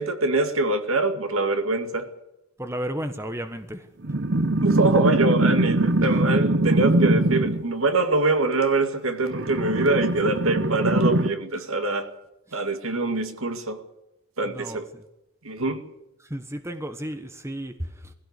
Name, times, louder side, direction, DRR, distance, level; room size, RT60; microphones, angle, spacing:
voice 1, 0.0-2.1 4.6-12.1 12.5-13.8 14.4-14.8 15.4-15.8, right 2 dB, 70° right, 2.1 m, -24 dB
voice 2, 2.6-3.9 11.5-11.7 12.5-12.6 14.4-15.0 16.2-18.1, equal, 10° right, 1.2 m, -34 dB
sound 1, 4.0-7.6 9.2-11.3, right 2 dB, 55° right, 0.9 m, -22 dB
20.5 x 16.0 x 8.2 m
head